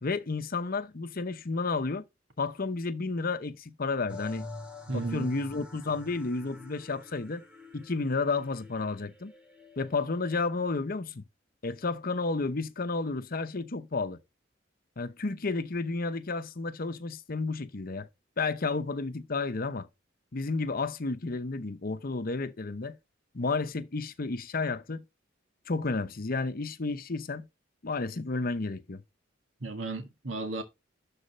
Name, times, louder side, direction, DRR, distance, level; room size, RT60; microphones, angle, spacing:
voice 1, 0.0-2.0 2.4-4.5 4.9-7.4 7.7-9.3 9.8-11.2 11.6-14.2 15.0-18.1 18.4-19.9 20.3-23.0 23.3-25.0 25.7-27.5 27.8-29.0, left 3 dB, 50° left, 0.8 m, -31 dB
sound 1, 4.1-10.3, left 2 dB, 5° right, 2.6 m, -47 dB
voice 2, 4.9-5.3 29.6-30.6, right 3 dB, 85° right, 1.9 m, -34 dB
12.0 x 4.2 x 4.2 m
head